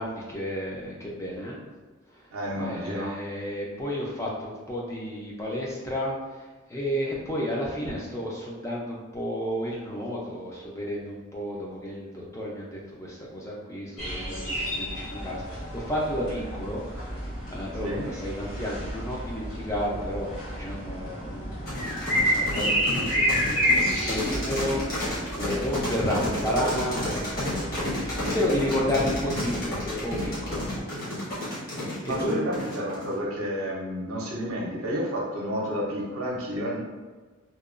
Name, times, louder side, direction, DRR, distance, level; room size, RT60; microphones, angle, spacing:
voice 1, 0.0-1.6 2.1-21.8 22.1-30.7 31.7-32.4, equal, 15° left, -4 dB, 0.4 m, -32 dB
voice 2, 2.3-3.1 17.8-18.0 32.0-36.8, equal, 75° right, -3 dB, 0.6 m, -30 dB
sound 1, 14.0-30.8, equal, 90° left, 1.4 m, -31 dB
sound 2, 21.7-33.1, left 1 dB, 45° left, 1.0 m, -31 dB
2.9 x 2.2 x 2.4 m, 1.3 s
head